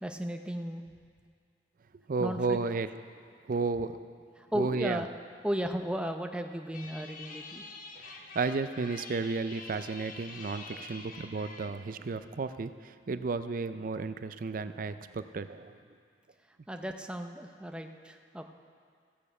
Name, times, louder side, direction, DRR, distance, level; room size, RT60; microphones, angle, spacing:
voice 1, 0.0-0.8 2.2-2.6 4.4-5.1 5.4-7.6 16.7-18.5, equal, 5° right, 5 dB, 0.6 m, -35 dB
voice 2, 2.1-2.9 3.5-4.0 4.6-5.0 8.3-15.8, right 4 dB, 50° right, 11 dB, 0.5 m, -33 dB
sound 1, 6.7-11.7, left 3 dB, 50° left, 0.9 m, -46 dB
14.5 x 8.5 x 5.4 m, 2.1 s
head